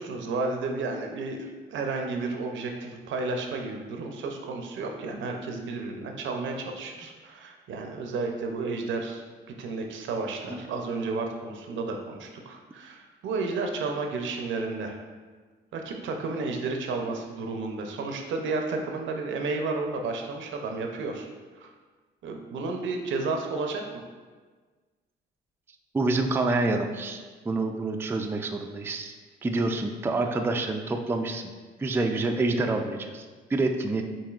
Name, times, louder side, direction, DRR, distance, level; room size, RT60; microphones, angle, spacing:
voice 1, 0.0-9.2 9.5-15.0 15.7-21.3 21.6-21.7 22.2-23.8, right 3 dB, 75° right, 3 dB, 0.6 m, -32 dB
voice 2, 25.9-29.2 29.4-31.5 31.8-34.0, right 2 dB, 10° right, 4 dB, 0.3 m, -27 dB
6.9 x 2.7 x 2.4 m, 1.4 s
cardioid pair, 90°, 20 cm